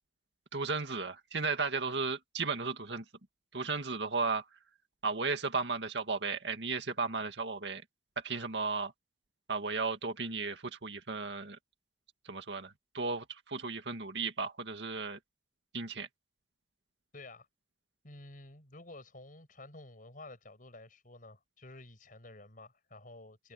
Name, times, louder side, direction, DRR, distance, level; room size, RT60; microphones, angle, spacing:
voice 1, 0.5-3.0 3.5-4.4 5.0-7.8 8.2-8.9 9.5-11.6 12.3-15.2 15.7-16.1, right 4 dB, 80° right, 2.1 m, -35 dB
voice 2, 17.1-17.5 18.0-23.5, left 2 dB, 50° left, 7.4 m, -51 dB
head